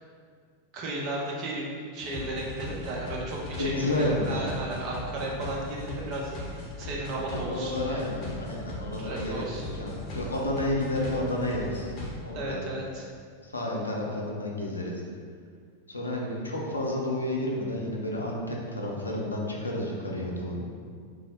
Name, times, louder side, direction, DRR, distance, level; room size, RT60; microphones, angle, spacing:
voice 1, 0.7-8.1 9.0-9.6 12.3-13.1, right 2 dB, 40° right, -2 dB, 0.6 m, -34 dB
sound 1, 2.0-12.1, left 1 dB, 35° left, 0.7 m, -38 dB
voice 2, 3.6-4.5 7.3-9.4 9.8-11.9 12.2-12.6 13.4-14.9 15.9-20.6, left 1 dB, 80° left, -2 dB, 0.5 m, -31 dB
3.0 x 2.0 x 3.8 m, 2.1 s
figure-of-eight pair, 90°, 0 cm